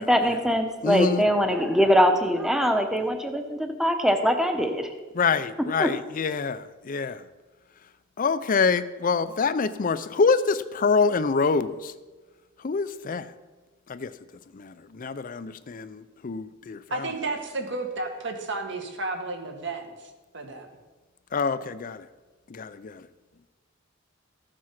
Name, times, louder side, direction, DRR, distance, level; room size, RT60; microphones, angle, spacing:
voice 1, 0.0-4.9 5.8-5.9, equal, ahead, 5 dB, 0.9 m, -22 dB
voice 2, 0.8-1.2 5.1-7.2 8.2-11.9 12.6-13.3 13.9-14.1 14.5-17.1 21.3-22.1 22.5-23.1, left 4 dB, 45° left, 13 dB, 0.5 m, -26 dB
voice 3, 16.9-20.7, right 3 dB, 65° right, 3 dB, 1.9 m, -32 dB
14.5 x 7.6 x 5.9 m, 1.3 s
head